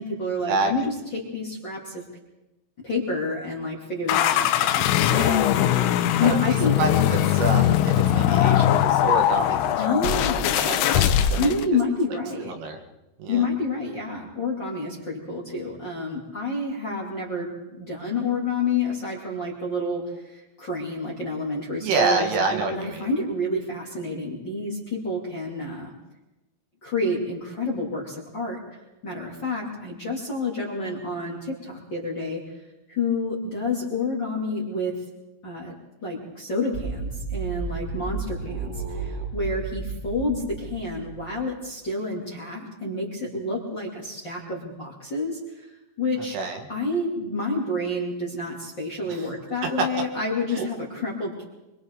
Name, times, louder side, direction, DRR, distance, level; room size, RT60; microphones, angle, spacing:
voice 1, 0.0-2.0 2.8-5.2 6.2-6.7 9.8-10.6 11.4-12.5 13.3-25.9 26.8-32.4 32.9-35.0 35.4-35.7 36.0-46.4 46.7-51.4, left 2 dB, 25° left, -4 dB, 2.8 m, -29 dB
sound 1, 4.1-11.7, left 11 dB, 80° left, 3.4 m, -21 dB
voice 2, 5.1-5.4 6.2-10.1 10.5-11.5 12.4-12.8 13.2-13.5 21.8-23.1 38.3-39.3 46.3-46.7 49.1-49.3 49.6-50.1 50.5-50.7, right 3 dB, 75° right, 3 dB, 4.3 m, -28 dB
sound 2, 36.7-41.6, right 4 dB, 60° right, 6.2 m, -33 dB
25.5 x 25.0 x 4.0 m, 0.96 s
omnidirectional pair, 5.8 m